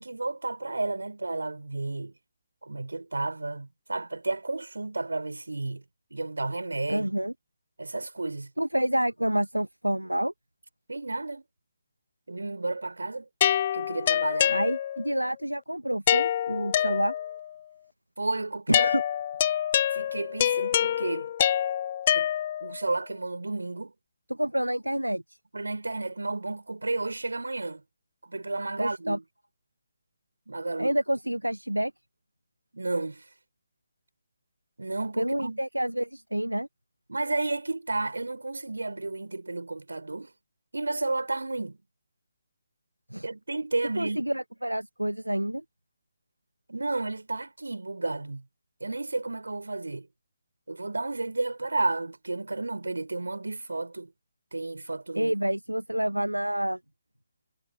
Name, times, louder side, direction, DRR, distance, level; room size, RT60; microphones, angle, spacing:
voice 1, 0.0-2.1 2.6-5.8 6.1-7.1 7.8-8.5 10.9-11.4 12.3-13.3 13.7-14.6 18.2-18.9 19.9-21.3 22.1-22.3 22.6-23.9 25.5-27.8 28.2-29.2 30.5-30.9 32.7-33.2 34.8-35.6 37.1-40.3 40.7-41.8 43.2-44.2 46.7-48.4 48.8-50.1 50.7-54.1 54.5-55.3, right 2 dB, 70° right, 4.8 m, -32 dB
voice 2, 6.9-7.3 8.6-10.3 14.5-17.1 18.7-19.0 24.3-25.4 28.8-29.2 30.8-31.9 35.2-36.7 43.1-43.3 44.0-45.6 55.1-56.8, right 1 dB, 90° right, 1.3 m, -28 dB
sound 1, 13.4-15.2 16.1-17.5 18.7-22.8, left 10 dB, 35° left, 0.8 m, -26 dB
figure-of-eight pair, 140°, 0 cm